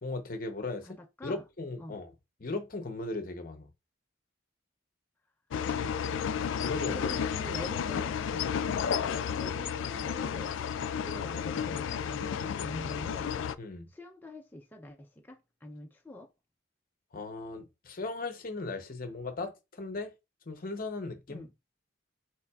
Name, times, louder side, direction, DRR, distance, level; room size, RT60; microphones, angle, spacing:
voice 1, 0.0-2.1 2.4-3.7 6.5-7.1 13.6-13.9 17.1-20.1 20.5-21.4, left 3 dB, 45° left, 0.7 m, -37 dB
voice 2, 0.9-1.4 1.8-2.0 6.9-8.2 8.7-10.6 11.0-13.3 13.9-16.3 21.3-21.5, left 1 dB, 10° left, 0.4 m, -45 dB
sound 1, 5.5-13.5, left 7 dB, 80° left, 0.3 m, -32 dB
5.7 x 3.3 x 2.3 m
head